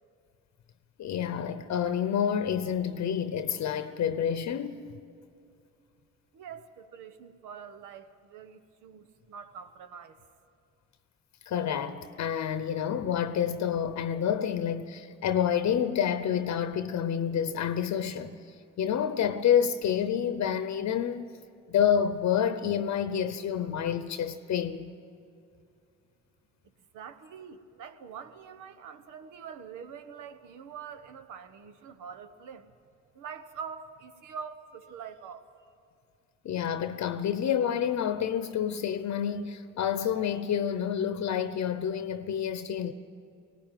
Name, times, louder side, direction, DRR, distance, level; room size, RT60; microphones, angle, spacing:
voice 1, 1.0-4.9 11.5-18.4 18.8-21.4 21.7-24.9 36.4-42.9, left 8 dB, 65° left, 0.8 m, -28 dB
voice 2, 6.3-10.2 26.9-32.7 33.1-35.5, right 7 dB, 85° right, 1.2 m, -44 dB
19.0 x 18.0 x 9.2 m
cardioid pair, 90°, 30 cm